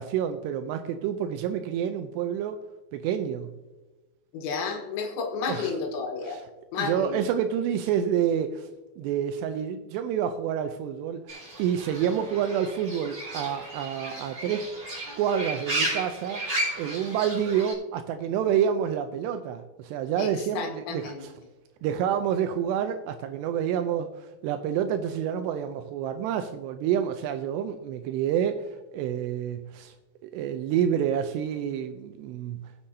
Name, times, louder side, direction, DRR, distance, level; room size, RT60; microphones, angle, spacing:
voice 1, 0.0-2.6 2.9-3.5 5.5-5.7 6.2-6.4 6.7-8.7 9.0-11.2 11.6-14.7 15.2-16.4 16.8-21.3 21.8-28.6 28.9-29.9 30.2-32.7, right 9 dB, 85° right, 8 dB, 2.6 m, -28 dB
voice 2, 4.3-6.4 6.7-7.2 20.2-21.2, left 5 dB, 85° left, 2 dB, 3.6 m, -32 dB
Fowl / Bird, 11.3-17.7, right 1 dB, 30° right, 3.8 m, -34 dB
19.5 x 8.1 x 2.7 m, 1.1 s
omnidirectional pair, 5.0 m